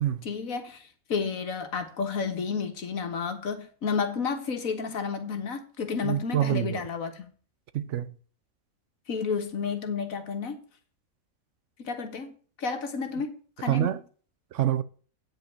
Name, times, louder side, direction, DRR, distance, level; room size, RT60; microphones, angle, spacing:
voice 1, 0.2-7.3 9.1-10.6 11.8-14.0, left 5 dB, 75° left, 1.8 m, -31 dB
voice 2, 6.0-6.8 7.7-8.1 13.7-14.0 14.5-14.8, right 12 dB, 65° right, 0.9 m, -26 dB
9.1 x 5.5 x 7.1 m
omnidirectional pair, 1.5 m